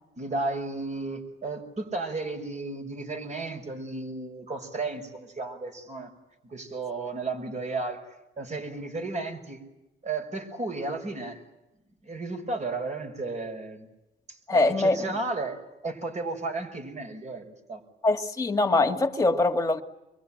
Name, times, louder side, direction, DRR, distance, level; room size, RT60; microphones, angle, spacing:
voice 1, 0.2-6.1 6.4-8.0 8.4-9.6 10.0-11.4 12.0-13.9 14.5-17.8, right 3 dB, 35° right, 6.0 m, -33 dB
voice 2, 14.5-15.1 18.0-19.8, left 2 dB, 15° left, 2.4 m, -23 dB
26.0 x 22.5 x 9.0 m
cardioid pair, 90°, 20 cm